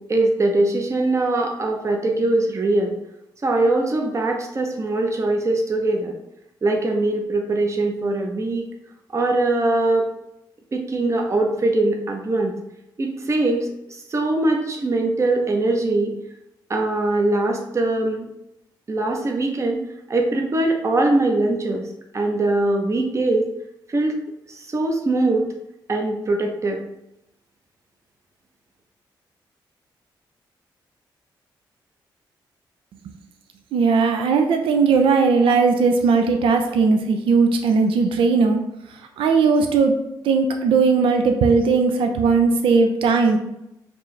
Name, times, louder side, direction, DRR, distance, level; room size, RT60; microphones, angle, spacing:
voice 1, 0.0-2.9 3.4-6.1 6.6-8.7 9.1-10.1 10.7-12.5 13.0-13.7 14.1-16.1 16.7-18.3 18.9-19.8 20.1-21.9 22.1-23.5 23.9-24.2 24.5-25.4 25.9-26.8, right 2 dB, 35° right, 2 dB, 0.7 m, -21 dB
voice 2, 33.7-38.6 39.2-39.9 40.2-43.4, right 4 dB, 85° right, 5 dB, 0.5 m, -18 dB
4.4 x 2.6 x 3.2 m, 0.84 s
cardioid pair, 75°, 9 cm